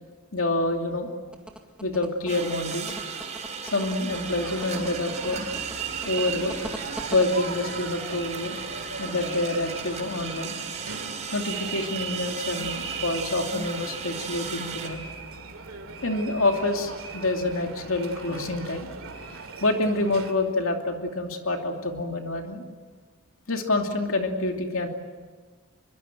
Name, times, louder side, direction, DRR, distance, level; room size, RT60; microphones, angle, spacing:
voice 1, 0.3-1.1 1.8-2.9 3.6-5.5 6.0-8.6 9.0-10.6 11.3-15.0 16.0-18.9 19.6-22.6 23.5-24.9, left 2 dB, 65° left, 3 dB, 2.7 m, -27 dB
sound 1, 1.3-7.2, right 1 dB, 5° right, 2.1 m, -40 dB
sound 2, 2.3-14.9, right 5 dB, 30° right, 4.0 m, -36 dB
sound 3, 4.1-20.3, right 5 dB, 70° right, 2.7 m, -39 dB
25.0 x 23.5 x 7.6 m, 1.5 s
head